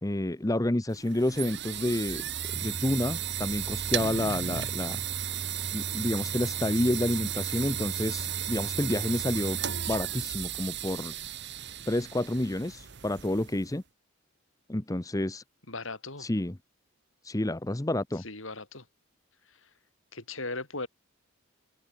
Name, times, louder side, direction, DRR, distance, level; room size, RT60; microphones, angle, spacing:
voice 1, 0.0-5.0 5.7-9.6 9.9-11.1 11.9-13.8 14.7-15.4 16.2-16.6 17.2-18.2, left 1 dB, 15° left, 0.8 m, -29 dB
sound 1, 0.9-13.7, right 9 dB, 55° right, 1.6 m, -34 dB
voice 2, 15.7-16.3 18.2-18.8 20.1-20.9, left 3 dB, 65° left, 5.4 m, -37 dB
head